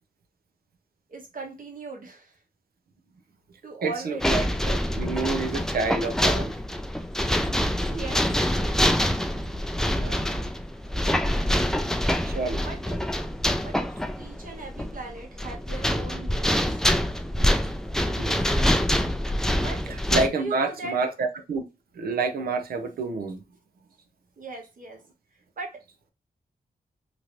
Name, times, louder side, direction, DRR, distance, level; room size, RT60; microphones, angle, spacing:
voice 1, 1.1-2.4 3.6-4.2 7.7-8.9 12.5-13.0 13.6-13.8 14.1-16.8 19.5-20.0 20.3-21.0 24.4-25.0 25.6-25.8, right 3 dB, 60° right, 1.2 m, -39 dB
voice 2, 3.8-6.5 10.0-10.2 12.2-12.6 18.2-18.6 20.1-21.6 22.0-23.4, right 4 dB, 75° right, 0.6 m, -28 dB
sound 1, 4.2-20.3, equal, 5° left, 0.4 m, -25 dB
3.0 x 2.5 x 2.9 m
cardioid pair, 80°, 15 cm